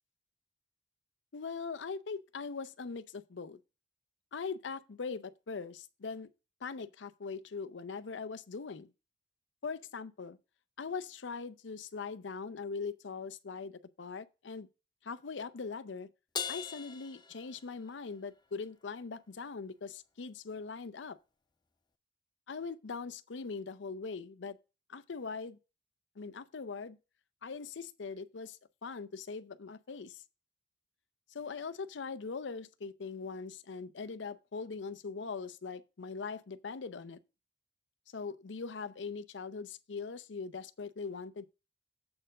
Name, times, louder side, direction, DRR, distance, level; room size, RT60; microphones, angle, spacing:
voice 1, 1.3-3.6 4.3-6.3 6.6-8.9 9.6-10.4 10.8-14.7 15.0-16.1 16.5-21.2 22.5-24.6 24.9-25.6 26.2-27.0 27.4-30.2 31.3-37.2 38.1-41.5, left 5 dB, 80° left, 0.6 m, -41 dB
Crash cymbal, 16.3-18.1, left 7 dB, 25° left, 0.5 m, -40 dB
7.7 x 4.4 x 6.4 m
head